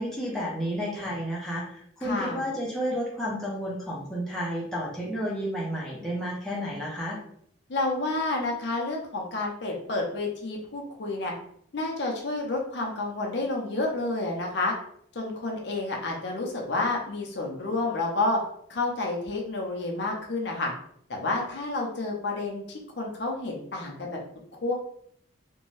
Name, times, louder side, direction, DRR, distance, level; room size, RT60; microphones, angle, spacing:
voice 1, 0.0-7.2, equal, 5° left, -6 dB, 0.6 m, -31 dB
voice 2, 2.0-2.4 7.7-11.3 11.7-14.7 15.1-18.4 18.7-20.7 21.1-24.2 24.6-24.7, left 2 dB, 60° left, 0 dB, 0.6 m, -29 dB
2.6 x 2.2 x 3.1 m, 0.67 s
head